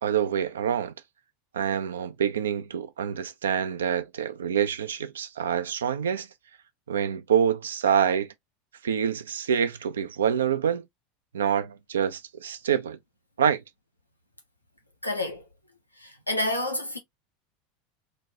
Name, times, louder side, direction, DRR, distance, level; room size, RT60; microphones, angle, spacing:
voice 1, 0.0-0.9 1.5-6.3 6.9-8.3 8.8-10.8 11.3-13.0 13.4-13.6, right 8 dB, 70° right, 0.4 m, -26 dB
voice 2, 15.0-15.5 16.0-17.0, left 1 dB, 90° left, 0.7 m, -29 dB
3.9 x 2.2 x 2.5 m
figure-of-eight pair, 80°, 0 cm